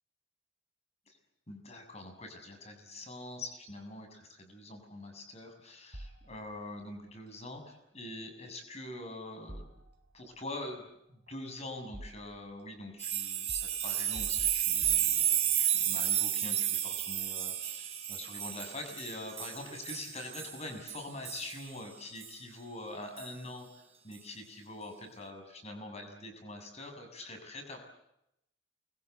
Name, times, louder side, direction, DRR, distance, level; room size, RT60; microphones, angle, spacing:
voice 1, 1.5-9.7 10.1-27.8, left 2 dB, 35° left, 5 dB, 6.9 m, -44 dB
sound 1, 5.9-6.8 9.5-10.4 11.3-12.6 13.5-15.7, right 1 dB, 60° right, 3.4 m, -48 dB
sound 2, 13.0-21.6 22.2-22.3 23.2-23.3, right 11 dB, 35° right, 3.8 m, -32 dB
29.5 x 22.5 x 8.3 m, 0.80 s
head